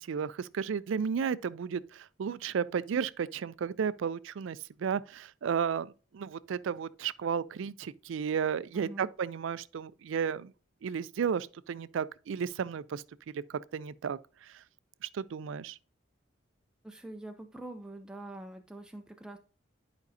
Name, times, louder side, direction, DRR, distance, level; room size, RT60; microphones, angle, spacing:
voice 1, 0.0-10.5 10.8-13.0 13.3-14.6 15.0-15.8, right 7 dB, 75° right, 0.3 m, -33 dB
voice 2, 8.7-9.1 16.8-19.4, right 1 dB, 5° right, 0.4 m, -44 dB
10.5 x 5.2 x 2.7 m
head